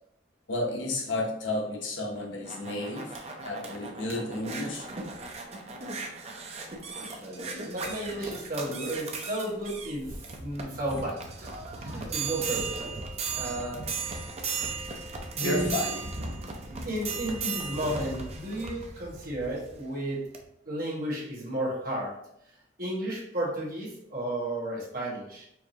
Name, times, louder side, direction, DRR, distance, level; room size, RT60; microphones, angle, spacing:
voice 1, 0.5-3.2 3.4-4.9 15.4-16.0, left 2 dB, 85° left, 0 dB, 0.8 m, -32 dB
sound 1, 2.1-19.8 20.3-20.4, right 4 dB, 35° right, 0.5 m, -37 dB
voice 2, 6.9-11.5 11.8-13.0 13.3-14.2 15.3-15.8 16.7-20.2 20.6-22.1 22.8-25.5, right 1 dB, 50° right, -4 dB, 1.2 m, -33 dB
4.6 x 2.6 x 2.8 m, 0.77 s
head